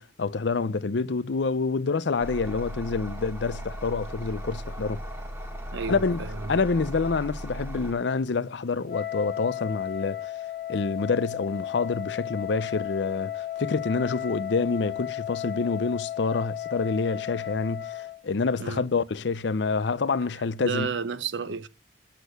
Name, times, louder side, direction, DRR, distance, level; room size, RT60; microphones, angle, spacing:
voice 1, 0.0-5.0 5.9-10.3 10.7-20.9, left 4 dB, 75° left, 0.5 m, -27 dB
sound 1, 2.2-7.9, equal, 15° right, 1.6 m, -37 dB
voice 2, 5.7-6.5 18.6-18.8 20.6-21.7, right 5 dB, 80° right, 0.7 m, -32 dB
Wind instrument woodwind instrument, 8.9-18.2, left 12 dB, 50° left, 0.9 m, -34 dB
8.2 x 6.7 x 8.0 m
head